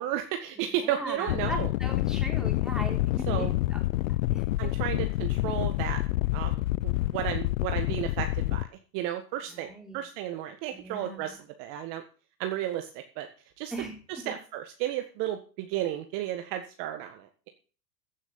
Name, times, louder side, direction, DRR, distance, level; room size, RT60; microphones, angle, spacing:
voice 1, 0.0-1.7 3.3-3.5 4.6-6.0 6.3-8.7 8.9-12.0 12.4-13.3 13.6-13.7 14.1-17.5, right 11 dB, 40° right, 6 dB, 1.7 m, -33 dB
voice 2, 1.0-3.8 4.3-4.5 9.5-10.0 10.7-11.3 13.7-14.0 14.2-14.3, right 1 dB, ahead, 1 dB, 4.0 m, -39 dB
sound 1, 1.3-8.7, left 17 dB, 55° left, 0.6 m, -28 dB
15.0 x 6.3 x 7.3 m, 0.38 s
hypercardioid pair, 110°, 49 cm